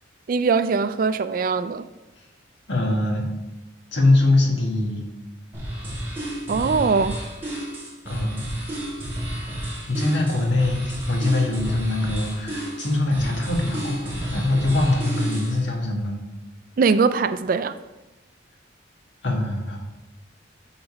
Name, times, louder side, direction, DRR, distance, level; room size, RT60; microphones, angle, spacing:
voice 1, 0.3-1.8 6.5-7.2 16.8-17.7, right 5 dB, 50° right, 0.3 m, -21 dB
voice 2, 2.7-3.3 3.9-5.1 8.0-8.4 9.9-16.2 19.2-19.8, left 2 dB, 75° left, 1.6 m, -23 dB
sound 1, 5.5-15.6, right 1 dB, 10° right, 2.4 m, -31 dB
8.7 x 4.0 x 5.0 m
head